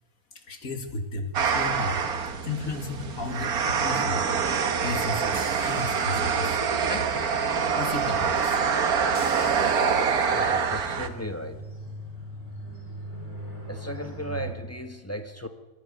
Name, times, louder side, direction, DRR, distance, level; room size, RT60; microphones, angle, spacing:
voice 1, 0.5-2.0 2.4-6.6 6.9-7.1 7.8-8.6, left 3 dB, 70° left, 5 dB, 2.4 m, -34 dB
sound 1, 1.3-11.1, right 6 dB, 90° right, 1.8 m, -25 dB
sound 2, 3.3-4.2 5.3-7.2 9.2-11.1, right 1 dB, 35° right, 4.8 m, -48 dB
sound 3, 10.0-14.5, right 1 dB, 50° right, 6.6 m, -43 dB
voice 2, 10.3-11.7 13.7-15.5, equal, 10° left, 6 dB, 1.2 m, -36 dB
22.5 x 15.0 x 8.0 m, 1.2 s
omnidirectional pair, 1.5 m